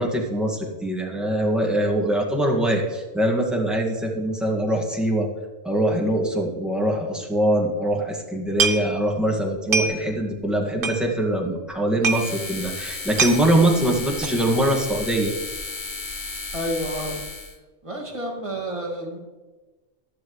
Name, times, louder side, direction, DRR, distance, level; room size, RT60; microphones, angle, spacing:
voice 1, 0.0-5.3 5.6-15.3, right 1 dB, ahead, -1 dB, 1.9 m, -23 dB
sound 1, 8.5-9.2 9.5-10.2 10.5-10.6 10.8-11.4 11.7-11.8 12.0-12.3 12.7-12.8 13.0-13.4 14.2-14.5 14.8-15.2 15.5-15.6, right 5 dB, 45° right, 1.1 m, -24 dB
sound 2, 12.0-17.6, left 3 dB, 40° left, 1.1 m, -34 dB
voice 2, 16.5-17.2 17.8-19.2, equal, 25° right, -1 dB, 2.1 m, -30 dB
15.0 x 11.0 x 3.2 m, 1.2 s
omnidirectional pair, 1.4 m